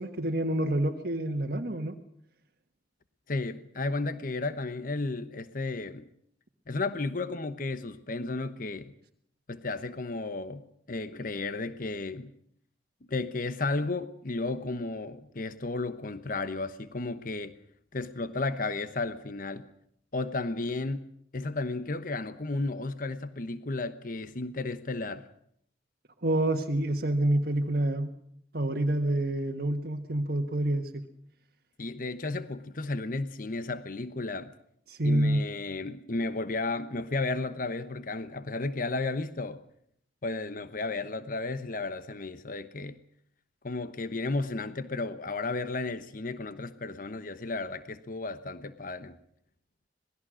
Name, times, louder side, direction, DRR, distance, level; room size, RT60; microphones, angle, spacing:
voice 1, 0.0-1.9 26.2-28.1 28.5-31.0 34.9-35.4, right 1 dB, 60° right, 5 dB, 1.5 m, -27 dB
voice 2, 3.3-6.1 6.7-8.9 9.5-12.3 13.1-17.6 17.9-19.7 20.1-21.1 21.3-25.3 31.8-34.5 35.0-39.6 40.2-43.0 43.6-49.2, left 3 dB, 50° left, 12 dB, 1.1 m, -33 dB
26.5 x 19.5 x 6.4 m, 0.69 s
head